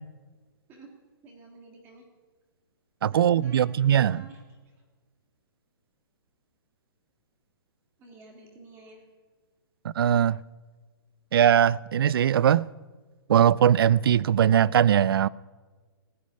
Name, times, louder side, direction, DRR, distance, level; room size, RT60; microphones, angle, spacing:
voice 1, 1.2-2.1 3.0-4.4 4.8-4.9 8.0-9.0, right 3 dB, 15° right, 1.7 m, -50 dB
voice 2, 3.0-4.2 9.8-10.4 11.3-12.7 13.3-15.3, right 9 dB, 65° right, 0.4 m, -20 dB
15.5 x 6.5 x 9.9 m
hypercardioid pair, 170°, 13 cm